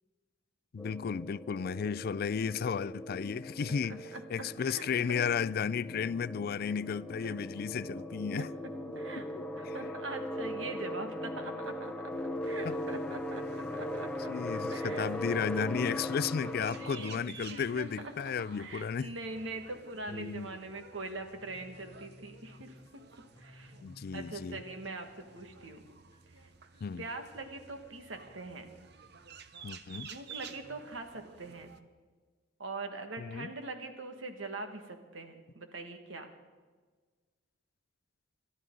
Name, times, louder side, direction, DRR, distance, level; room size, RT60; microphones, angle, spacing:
voice 1, 0.7-4.0 4.3-8.5 9.7-9.8 12.6-12.8 14.3-19.1 20.1-20.5 23.8-24.6 26.8-27.0 29.6-30.1 33.2-33.5, left 6 dB, 55° left, 0.4 m, -34 dB
sound 1, 0.8-17.3, equal, 5° left, 0.8 m, -39 dB
voice 2, 4.6-5.2 7.2-7.4 8.3-9.3 9.6-12.1 12.4-13.4 13.7-14.3 14.7-15.1 16.5-22.8 23.4-23.7 24.1-25.8 26.4-26.5 27.0-28.7 30.0-31.7 32.6-36.3, right 3 dB, 90° right, 1.8 m, -43 dB
sound 2, 12.4-31.8, right 6 dB, 60° right, 0.9 m, -53 dB
sound 3, 13.4-29.4, left 1 dB, 20° left, 1.1 m, -58 dB
28.5 x 12.5 x 3.9 m
head